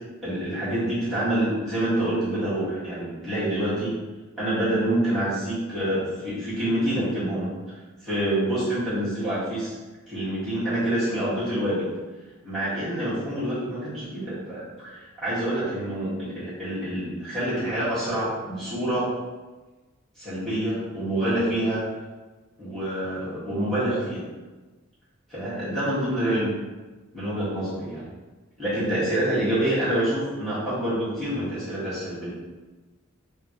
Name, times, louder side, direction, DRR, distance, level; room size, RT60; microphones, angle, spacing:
voice 1, 0.2-3.9 4.4-7.5 8.0-9.8 10.1-11.9 12.4-19.1 20.2-21.8 22.6-24.2 25.3-26.5 27.1-28.1 28.6-32.3, right 1 dB, ahead, -13 dB, 1.4 m, -27 dB
3.7 x 2.4 x 2.8 m, 1.2 s
head